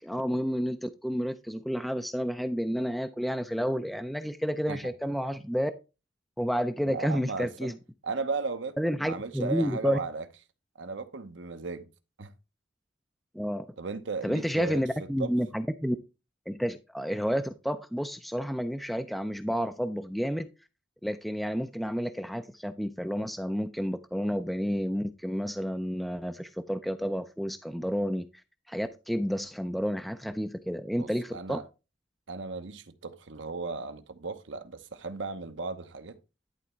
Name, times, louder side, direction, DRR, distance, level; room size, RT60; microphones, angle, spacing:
voice 1, 0.0-5.7 6.4-7.7 8.8-10.0 13.3-13.7 14.2-16.0 16.5-20.5 21.0-28.3 28.7-31.6, equal, ahead, 0.4 m, -30 dB
voice 2, 6.8-7.7 8.0-10.2 10.8-11.9 12.2-12.3 13.8-14.8 15.2-15.3 31.0-31.6 32.3-36.2, right 4 dB, 70° right, 0.9 m, -36 dB
11.0 x 4.1 x 4.5 m
head